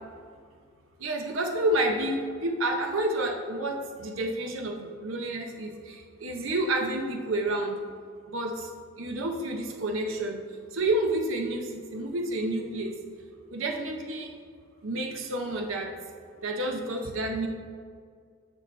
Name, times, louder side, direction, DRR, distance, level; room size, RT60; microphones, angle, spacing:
voice 1, 1.0-7.8 8.3-8.7 9.0-10.4 10.7-13.0 13.5-14.3 14.8-15.9 16.4-17.5, right 1 dB, 70° right, 3 dB, 0.7 m, -29 dB
10.5 x 6.8 x 3.1 m, 2.1 s
head